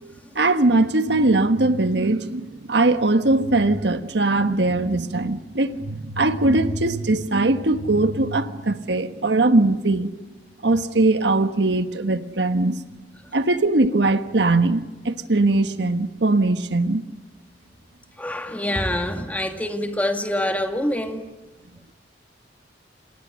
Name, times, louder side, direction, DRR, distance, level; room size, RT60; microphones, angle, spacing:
voice 1, 0.0-10.1 10.6-12.8 13.3-17.0, right 2 dB, 70° right, 1.4 m, -20 dB
voice 2, 18.2-21.2, left 1 dB, 10° left, 2.2 m, -25 dB
30.0 x 28.0 x 6.5 m
head